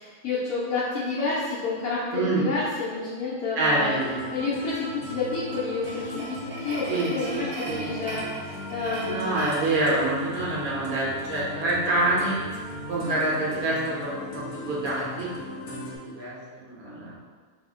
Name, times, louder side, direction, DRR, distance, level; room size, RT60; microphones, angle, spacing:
voice 1, 0.0-3.9 4.3-9.5, left 3 dB, 85° left, -8 dB, 1.2 m, -30 dB
voice 2, 2.1-2.5 3.5-4.2 6.9-7.4 7.7-7.8 9.0-12.4 12.9-17.1, right 2 dB, 85° right, -6 dB, 1.5 m, -27 dB
sound 1, 3.8-16.0, left 1 dB, 50° left, 0.8 m, -38 dB
sound 2, 5.2-10.7, right 2 dB, 60° right, 0.9 m, -39 dB
4.5 x 2.1 x 3.6 m, 1.5 s
omnidirectional pair, 1.5 m